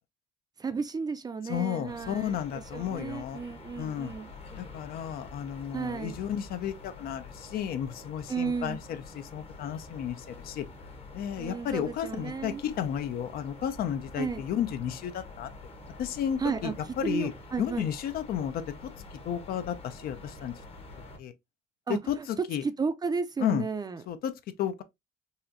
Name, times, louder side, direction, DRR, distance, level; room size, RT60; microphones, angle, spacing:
voice 1, 0.6-4.3 5.7-6.2 8.3-8.8 11.4-12.6 14.2-14.4 16.4-17.9 21.9-24.0, right 5 dB, 25° right, 0.4 m, -33 dB
voice 2, 1.5-3.4 3.8-4.1 4.6-10.6 11.1-15.5 16.0-16.7 17.0-17.3 17.6-18.6 19.3-20.5 21.2-21.3 21.9-22.6 23.4-23.6 24.1-24.3 24.6-24.8, left 9 dB, 60° left, 0.5 m, -32 dB
sound 1, 1.8-21.2, left 3 dB, 35° left, 0.9 m, -47 dB
4.1 x 2.4 x 2.6 m
cardioid pair, 110°, 17 cm